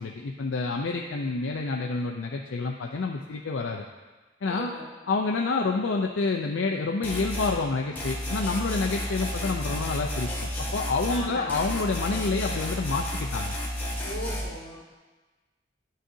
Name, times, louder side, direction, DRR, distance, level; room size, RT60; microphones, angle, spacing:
voice 1, 0.0-3.9 4.4-4.7 5.1-13.6, left 3 dB, 85° left, 1 dB, 0.5 m, -28 dB
voice 2, 4.5-4.9 11.1-11.7 14.0-14.8, left 1 dB, 65° left, -3 dB, 2.0 m, -37 dB
sound 1, 7.0-7.6 8.0-11.2 11.5-14.4, left 1 dB, 10° left, 1.4 m, -32 dB
11.0 x 6.4 x 2.7 m, 1.3 s
head